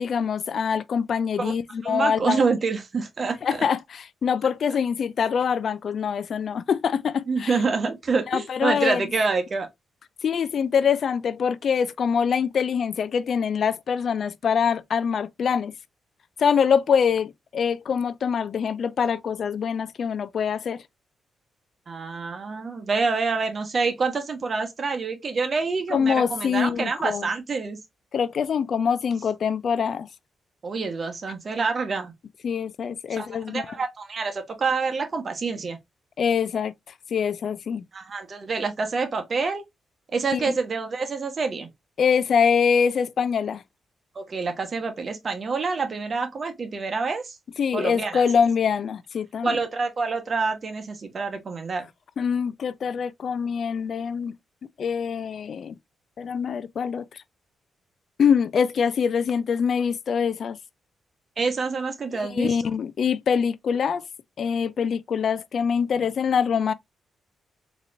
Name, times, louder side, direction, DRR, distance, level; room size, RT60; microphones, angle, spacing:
voice 1, 0.0-2.4 3.4-7.5 8.3-9.0 10.2-15.7 16.4-20.8 25.9-27.3 28.1-30.1 32.4-33.8 36.2-36.7 37.1-37.8 40.3-40.5 42.0-43.6 47.6-49.6 52.2-54.3 54.8-55.8 56.2-57.2 58.2-60.6 62.1-64.0 64.4-66.7, left 7 dB, 65° left, 0.3 m, -24 dB
voice 2, 1.8-3.6 7.3-9.7 21.9-27.8 30.6-32.1 33.1-35.8 37.9-39.6 40.1-41.7 44.1-47.4 47.7-48.2 49.4-51.9 61.4-62.6, right 4 dB, 50° right, 1.1 m, -27 dB
4.0 x 3.0 x 2.5 m
supercardioid pair, 50°, 0 cm